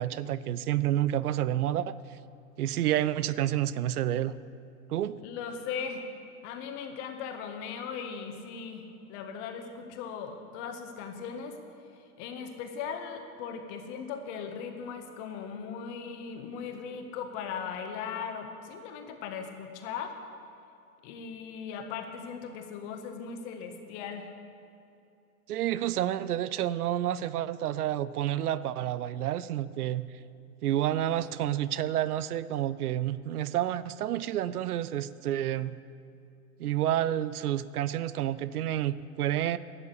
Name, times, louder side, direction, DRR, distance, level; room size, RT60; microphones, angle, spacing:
voice 1, 0.0-2.0 2.6-4.4 4.9-5.2 25.5-30.1 30.6-35.8 36.6-39.6, right 12 dB, 75° right, 17 dB, 0.6 m, -29 dB
voice 2, 5.2-6.0 6.4-11.6 12.2-20.2 21.0-24.3, left 6 dB, 50° left, 5 dB, 1.6 m, -38 dB
12.0 x 7.0 x 8.2 m, 2.7 s
hypercardioid pair, 95°, 45 cm